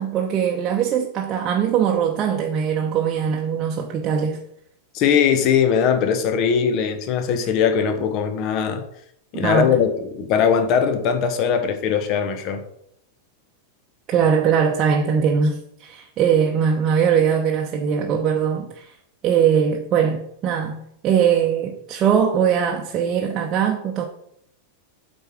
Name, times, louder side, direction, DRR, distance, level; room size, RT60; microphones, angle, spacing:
voice 1, 0.0-4.4 9.3-9.7 14.1-18.9 19.2-24.0, right 7 dB, 30° right, 0.8 m, -21 dB
voice 2, 4.9-8.8 9.3-12.6, left 7 dB, 40° left, 1.1 m, -20 dB
8.1 x 4.5 x 6.1 m
figure-of-eight pair, 90°, 0 cm